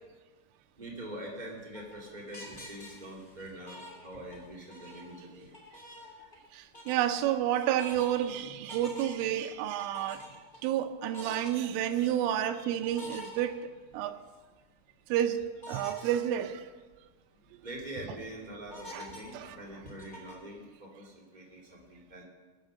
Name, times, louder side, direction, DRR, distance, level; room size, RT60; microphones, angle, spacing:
voice 1, 0.8-5.5 8.4-8.6 10.0-10.4 11.3-12.1 12.5-12.9 17.6-22.2, right 1 dB, 20° right, 1.2 m, -45 dB
sound 1, 1.3-4.4 4.7-6.5 6.7-7.1 7.6-8.2 8.7-9.4 9.8-10.6 11.0-11.5 12.8-14.0 14.5-14.6 15.6-16.0 16.5-16.6 16.9-17.0 17.5-17.9 18.7-20.5, left 1 dB, 30° left, 0.8 m, -47 dB
voice 2, 6.5-10.3 10.6-13.6 13.9-14.2 15.1-15.4 15.7-16.7 18.9-19.1 19.3-19.6, right 11 dB, 90° right, 3.3 m, -30 dB
20.5 x 8.8 x 6.4 m
omnidirectional pair, 5.6 m